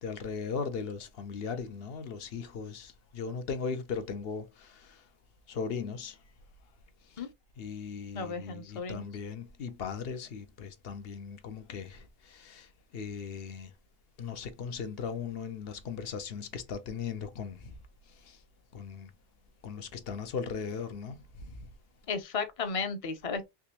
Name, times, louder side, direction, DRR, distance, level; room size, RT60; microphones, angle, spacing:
voice 1, 0.0-5.0 5.5-6.2 7.6-13.7 14.2-17.7 18.2-18.4 18.7-19.1 19.6-21.5, left 6 dB, 70° left, 0.9 m, -38 dB
voice 2, 8.1-9.1 22.1-23.5, left 5 dB, 40° left, 0.6 m, -34 dB
3.6 x 2.9 x 2.8 m
omnidirectional pair, 1.0 m